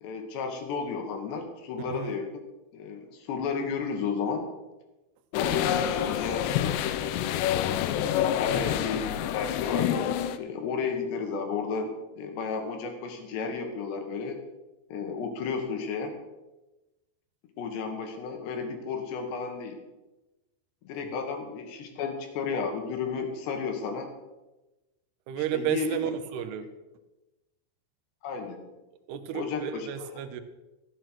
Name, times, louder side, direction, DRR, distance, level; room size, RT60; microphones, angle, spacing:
voice 1, 0.0-2.3 2.7-4.5 5.3-7.2 8.3-14.4 14.9-16.2 17.6-19.8 20.9-24.1 25.5-26.0 28.2-28.7 29.3-30.1, left 5 dB, 70° left, 5 dB, 3.3 m, -33 dB
sound 1, 5.3-10.4, left 11 dB, 90° left, 2.5 m, -27 dB
voice 2, 8.5-9.0 21.0-21.1 25.3-26.7 29.1-30.4, right 10 dB, 75° right, 10 dB, 2.4 m, -33 dB
14.0 x 8.7 x 6.1 m, 1.1 s
omnidirectional pair, 5.6 m